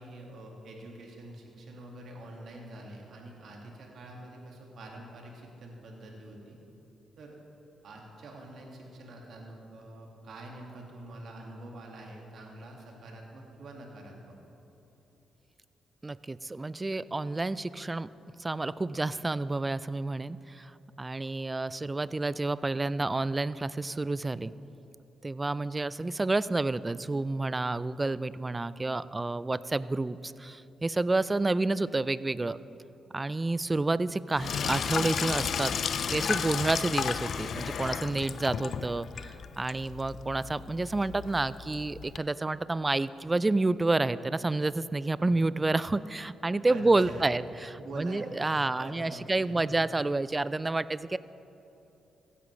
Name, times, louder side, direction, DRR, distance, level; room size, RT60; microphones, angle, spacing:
voice 1, 0.0-6.6 7.2-7.4 7.8-14.3 45.2-45.4 46.7-47.3 47.8-49.8, right 1 dB, 65° right, 0 dB, 2.0 m, -46 dB
voice 2, 16.0-18.1 18.4-20.7 21.0-24.5 25.2-32.6 33.1-35.7 36.1-51.2, right 2 dB, 25° right, 18 dB, 0.3 m, -29 dB
Sink (filling or washing), 34.3-42.2, left 7 dB, 60° left, 0.4 m, -33 dB
15.5 x 11.0 x 3.2 m, 3.0 s
hypercardioid pair, 50°, 0 cm